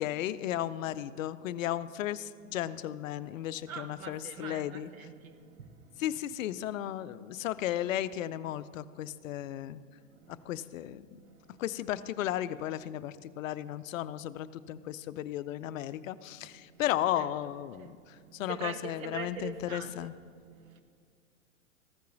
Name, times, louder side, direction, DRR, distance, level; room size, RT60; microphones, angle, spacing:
voice 1, 0.0-4.9 6.0-9.8 10.3-11.2 11.6-18.0 18.3-20.1, left 12 dB, 75° left, 15 dB, 0.5 m, -35 dB
voice 2, 3.4-6.2 7.4-7.6 10.1-10.5 11.1-11.8 16.4-20.8, right 7 dB, 80° right, 9 dB, 1.0 m, -46 dB
14.5 x 5.5 x 3.9 m, 2.1 s
hypercardioid pair, 115°, 41 cm